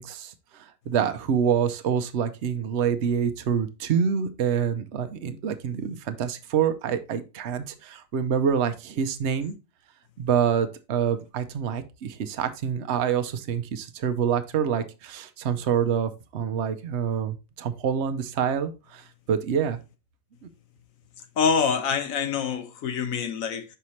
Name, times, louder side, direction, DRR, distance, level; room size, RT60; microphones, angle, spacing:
voice 1, 0.0-9.5 10.2-19.8, right 7 dB, 60° right, 1.0 m, -26 dB
voice 2, 21.4-23.6, left 6 dB, 85° left, 1.3 m, -25 dB
5.7 x 5.5 x 3.1 m
omnidirectional pair, 1.4 m